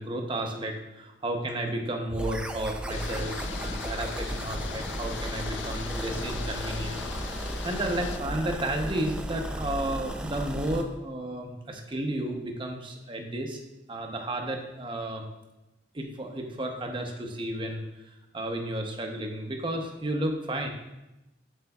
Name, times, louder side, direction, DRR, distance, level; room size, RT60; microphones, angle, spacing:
voice 1, 0.0-13.6 13.9-15.3 15.9-20.7, right 1 dB, 25° right, 3 dB, 0.7 m, -32 dB
sound 1, 2.1-10.8, equal, 5° right, 0.3 m, -35 dB
sound 2, 2.9-8.2, left 6 dB, 75° left, 0.4 m, -39 dB
7.8 x 6.3 x 2.3 m, 0.97 s
head